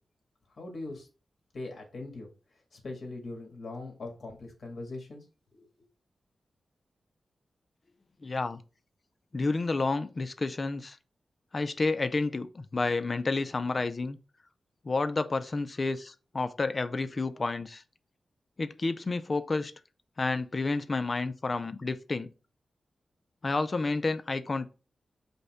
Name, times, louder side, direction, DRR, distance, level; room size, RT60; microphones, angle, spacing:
voice 1, 0.5-1.1 1.5-2.3 2.7-5.3 5.5-5.7, left 2 dB, 55° left, 1.8 m, -41 dB
voice 2, 8.2-8.6 9.3-11.0 11.5-14.2 14.8-17.8 18.6-19.7 20.2-22.3 23.4-24.7, left 3 dB, 40° left, 0.4 m, -30 dB
5.2 x 2.2 x 4.8 m
wide cardioid pair, 110°, 0 cm